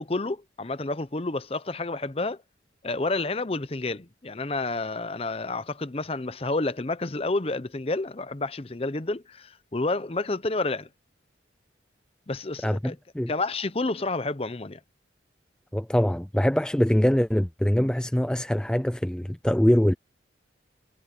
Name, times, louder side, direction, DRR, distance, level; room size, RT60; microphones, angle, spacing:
voice 1, 0.0-2.4 2.8-10.9 12.3-12.9 13.3-14.8, left 2 dB, 30° left, 0.7 m, -29 dB
voice 2, 12.6-13.3 15.7-19.9, equal, 5° left, 0.3 m, -23 dB
head